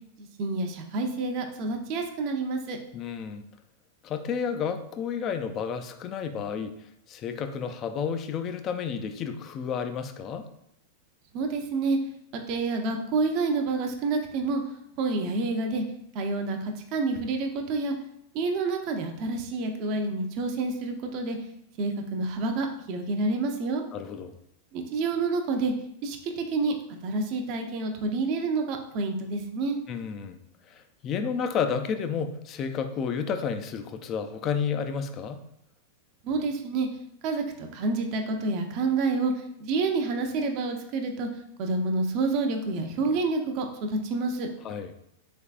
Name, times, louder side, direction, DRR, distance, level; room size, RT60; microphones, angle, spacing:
voice 1, 0.2-2.8 11.3-12.0 12.3-14.6 15.0-15.8 16.1-17.9 18.3-21.4 21.8-23.8 24.7-25.7 26.0-26.7 27.0-29.8 36.2-36.9 37.2-41.3 41.6-44.5, right 3 dB, 45° right, 4 dB, 0.5 m, -28 dB
voice 2, 2.9-3.4 4.0-6.8 7.1-10.5 23.9-24.3 29.9-30.4 30.7-35.4 44.6-44.9, left 6 dB, 35° left, 8 dB, 0.3 m, -31 dB
3.4 x 3.2 x 2.4 m, 0.74 s
hypercardioid pair, 125°, 0 cm